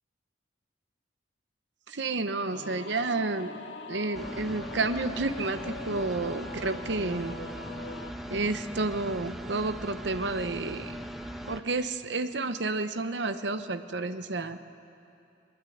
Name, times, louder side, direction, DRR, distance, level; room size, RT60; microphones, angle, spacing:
voice 1, 1.9-3.5 3.9-7.3 8.3-10.9 11.4-14.6, right 3 dB, 70° right, 10 dB, 1.0 m, -30 dB
Singing / Musical instrument, 2.5-8.1, left 2 dB, 70° left, 1.6 m, -42 dB
sound 1, 4.1-11.6, right 1 dB, ahead, 1.1 m, -40 dB
22.5 x 21.0 x 9.3 m, 2.7 s
head